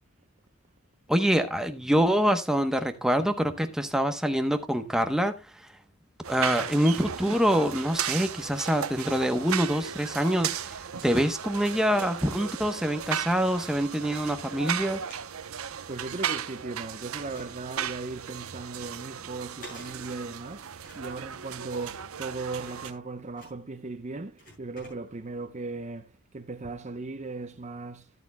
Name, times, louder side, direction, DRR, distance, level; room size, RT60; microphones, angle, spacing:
voice 1, 1.1-5.4 6.3-15.0, equal, ahead, 0.9 m, -25 dB
sound 1, 6.2-22.9, right 8 dB, 75° right, 0.8 m, -36 dB
sound 2, 8.7-9.6 10.1-11.8 12.4-12.5 12.7-14.6 14.9-16.8 17.2-25.4, equal, 40° left, 7.9 m, -53 dB
voice 2, 15.9-20.7 21.0-26.1 26.3-28.1, right 3 dB, 35° right, 0.7 m, -37 dB
13.5 x 11.0 x 2.2 m
head